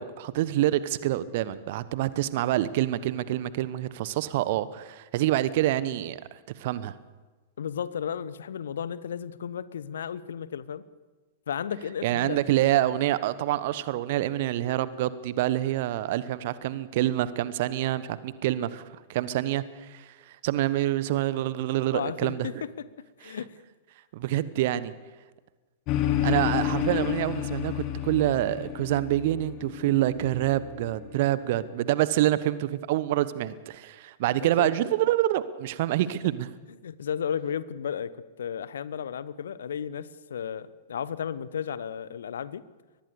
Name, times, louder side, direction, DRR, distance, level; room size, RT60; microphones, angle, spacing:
voice 1, 0.0-6.9 12.0-22.5 23.2-23.4 24.1-24.9 26.2-36.5, right 14 dB, 50° right, 16 dB, 1.2 m, -27 dB
voice 2, 7.6-10.8 11.5-12.4 21.9-22.9 23.2-23.5 34.4-34.7 36.8-42.6, left 8 dB, 65° left, 18 dB, 0.9 m, -34 dB
sound 1, 25.9-31.5, left 11 dB, 35° left, 2.5 m, -30 dB
23.5 x 19.5 x 7.0 m, 1.3 s
figure-of-eight pair, 100°, 0 cm